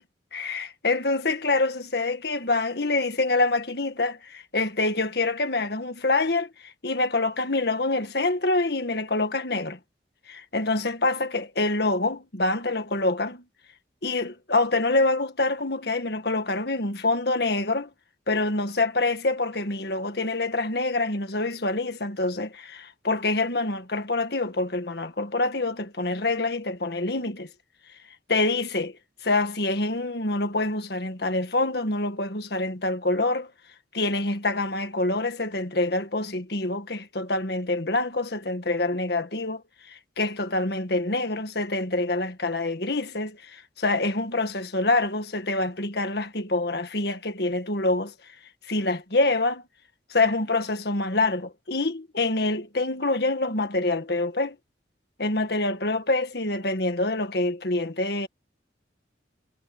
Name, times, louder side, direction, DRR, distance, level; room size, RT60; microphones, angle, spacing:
voice 1, 0.3-9.8 10.3-13.4 14.0-17.9 18.3-27.5 28.3-29.0 29.2-33.5 33.9-39.6 39.9-48.1 48.7-49.6 50.1-54.6 55.2-58.3, left 2 dB, 60° left, 1.8 m, -26 dB
head